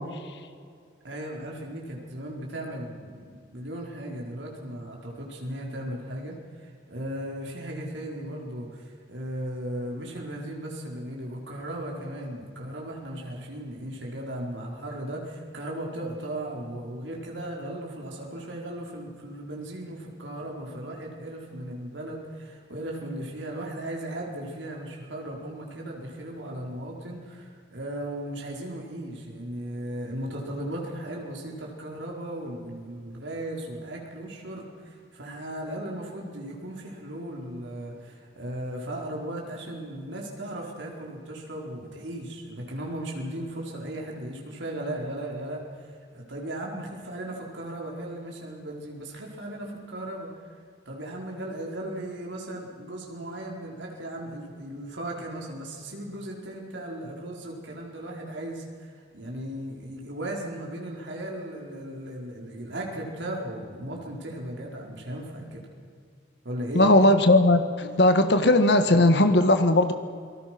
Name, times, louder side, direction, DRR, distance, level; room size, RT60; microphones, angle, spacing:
voice 1, 1.0-50.3 50.8-65.6 66.4-66.9, right 1 dB, 80° right, -1 dB, 4.7 m, -36 dB
voice 2, 66.7-69.9, left 1 dB, 65° left, 8 dB, 1.6 m, -18 dB
28.5 x 19.5 x 6.1 m, 2.1 s
head